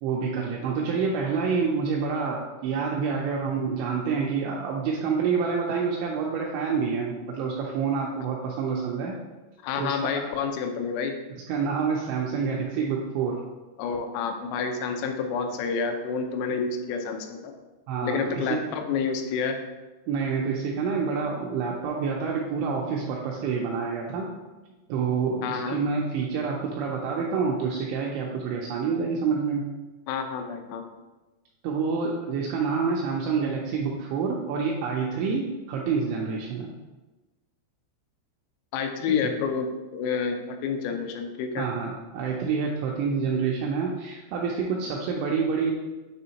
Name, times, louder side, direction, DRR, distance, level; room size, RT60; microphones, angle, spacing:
voice 1, 0.0-9.2 9.8-10.4 11.5-13.4 17.9-18.7 20.1-24.3 24.9-29.7 31.6-36.7 39.1-39.3 41.6-45.7, right 5 dB, 85° right, -2 dB, 2.7 m, -27 dB
voice 2, 9.6-11.2 13.8-17.5 18.0-19.6 25.4-25.8 30.1-30.8 38.7-41.7, left 5 dB, 90° left, 5 dB, 3.4 m, -29 dB
9.4 x 3.4 x 2.9 m, 1.2 s
omnidirectional pair, 5.9 m